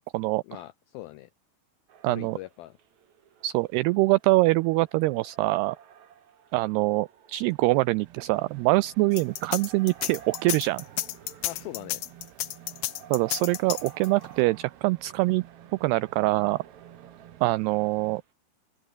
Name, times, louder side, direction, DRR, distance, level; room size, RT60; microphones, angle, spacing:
voice 1, 0.4-1.3 2.1-2.8 11.4-12.0, left 16 dB, 90° left, 2.1 m, -41 dB
sound 1, 1.9-18.2, right 8 dB, 50° right, 2.8 m, -53 dB
voice 2, 2.0-2.4 3.4-5.8 6.5-10.9 13.1-15.4 15.8-16.6 17.4-18.2, right 21 dB, 90° right, 2.3 m, -24 dB
sound 2, 7.3-18.2, right 12 dB, 70° right, 3.5 m, -52 dB
sound 3, 9.1-14.3, left 15 dB, 75° left, 2.1 m, -31 dB
open air
omnidirectional pair, 5.2 m